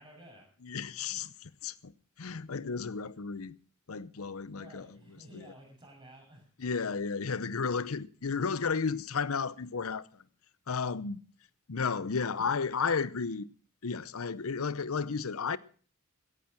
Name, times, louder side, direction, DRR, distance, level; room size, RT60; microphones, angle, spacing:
voice 1, 0.0-0.5 4.5-6.5, right 1 dB, 20° right, 7.8 m, -53 dB
voice 2, 0.6-1.9 2.2-3.6 3.9-5.0 5.3-5.5 6.6-10.2 10.7-11.2 11.7-13.5 13.8-15.6, left 5 dB, 90° left, 0.8 m, -33 dB
16.5 x 10.0 x 5.9 m
head